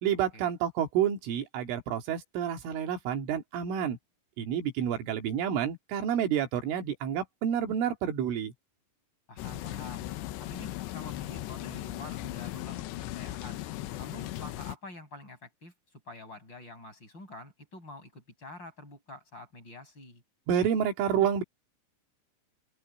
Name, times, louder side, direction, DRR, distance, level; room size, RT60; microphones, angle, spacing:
voice 1, 0.0-4.0 4.4-8.5 20.5-21.4, right 9 dB, 75° right, 4.4 m, -29 dB
voice 2, 9.3-10.1 10.4-13.6 14.0-20.2, left 2 dB, 20° left, 6.1 m, -47 dB
sound 1, 9.4-14.8, left 15 dB, 75° left, 2.8 m, -38 dB
open air
omnidirectional pair, 5.9 m